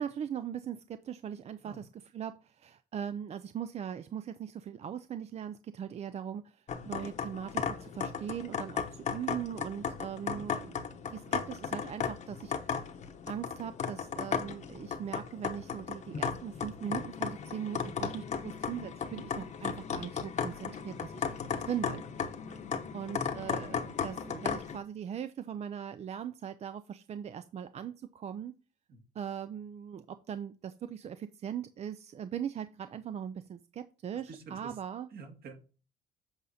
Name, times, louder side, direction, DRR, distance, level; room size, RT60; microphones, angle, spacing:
voice 1, 0.0-12.8 13.3-22.2 22.9-28.5 29.2-35.1, right 9 dB, 40° right, 12 dB, 0.5 m, -40 dB
sound 1, 6.7-24.8, left 6 dB, 45° left, 1.0 m, -36 dB
voice 2, 34.3-34.8 35.1-35.5, right 4 dB, 65° right, 3 dB, 2.2 m, -49 dB
8.0 x 5.0 x 4.1 m, 0.35 s
cardioid pair, 110°, 17 cm